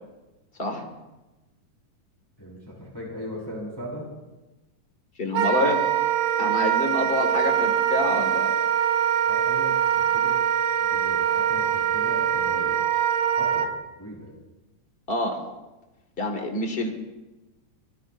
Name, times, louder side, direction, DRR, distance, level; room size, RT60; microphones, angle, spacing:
voice 1, 2.4-4.1 9.3-10.4 10.8-12.8 13.4-13.7 14.0-14.3, equal, 5° left, -4 dB, 4.7 m, -38 dB
voice 2, 5.2-5.8 6.4-8.5 15.1-15.4 16.2-16.9, left 2 dB, 20° left, 3 dB, 1.6 m, -27 dB
Wind instrument woodwind instrument, 5.3-13.7, right 9 dB, 75° right, 2.4 m, -23 dB
25.5 x 19.0 x 2.7 m, 1.1 s
omnidirectional pair, 3.6 m